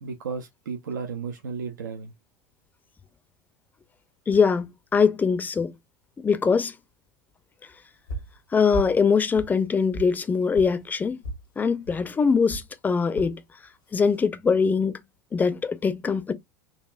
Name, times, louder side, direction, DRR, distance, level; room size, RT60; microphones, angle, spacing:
voice 1, 0.0-2.1, right 5 dB, 70° right, 0.5 m, -34 dB
voice 2, 4.3-5.7 6.2-6.7 8.5-11.2 11.6-13.4 13.9-15.0 15.3-16.3, left 5 dB, 15° left, 0.5 m, -22 dB
sound 1, 8.1-8.4 8.7-9.0 9.3-10.1 10.5-10.7 11.2-11.4 11.9-12.0 12.5-12.7 13.1-13.3 13.9-14.3, right 2 dB, 75° left, 0.9 m, -34 dB
3.9 x 2.4 x 2.3 m
figure-of-eight pair, 80°, 11 cm